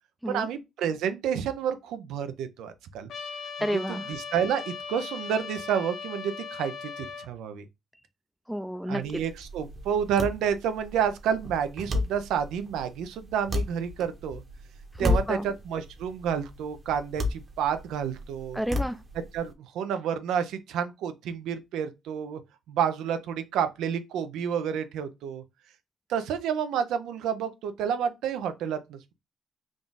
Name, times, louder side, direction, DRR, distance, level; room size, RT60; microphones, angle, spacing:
voice 1, 0.3-3.1 3.6-7.7 8.9-14.4 15.0-18.6 19.3-22.4 22.7-25.4 26.1-29.1, right 8 dB, 90° right, 0.5 m, -30 dB
Trumpet, 3.1-7.3, left 5 dB, 70° left, 0.8 m, -38 dB
voice 2, 3.6-4.1 8.5-9.2 15.0-15.5 18.5-19.0, equal, ahead, 0.5 m, -30 dB
sound 1, 9.0-19.5, left 2 dB, 35° right, 0.9 m, -34 dB
3.6 x 2.4 x 3.9 m
cardioid pair, 90°, 0 cm